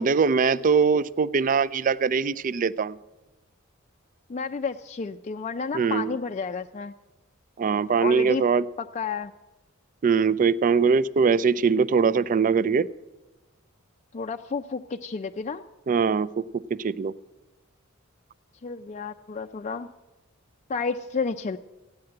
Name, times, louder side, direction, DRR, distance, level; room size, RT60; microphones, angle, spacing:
voice 1, 0.0-3.0 5.7-6.1 7.6-8.6 10.0-12.9 15.9-16.4 16.8-17.1, right 5 dB, 40° right, 18 dB, 0.4 m, -22 dB
voice 2, 4.3-6.9 8.0-8.4 8.8-9.3 14.1-15.6 18.6-19.9 20.7-21.6, left 5 dB, 35° left, 6 dB, 0.4 m, -31 dB
15.0 x 9.6 x 7.7 m, 1.1 s
head